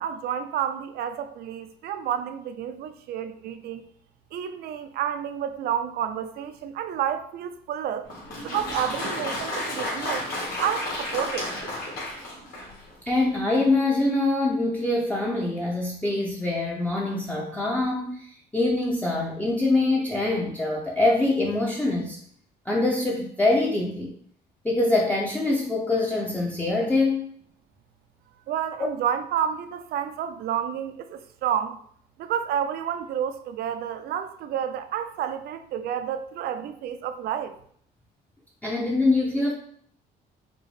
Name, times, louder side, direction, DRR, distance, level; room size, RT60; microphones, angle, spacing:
voice 1, 0.0-3.9 4.3-8.1 8.4-10.3 10.6-11.5 28.5-31.8 32.2-37.5, right 9 dB, 65° right, 0.4 m, -30 dB
Applause, 8.0-12.9, left 1 dB, 60° left, 1.5 m, -32 dB
voice 2, 13.1-22.2 22.7-24.1 24.6-27.3 38.6-39.5, left 2 dB, 10° left, 0.5 m, -24 dB
5.0 x 2.1 x 3.2 m
cardioid pair, 110°, 17 cm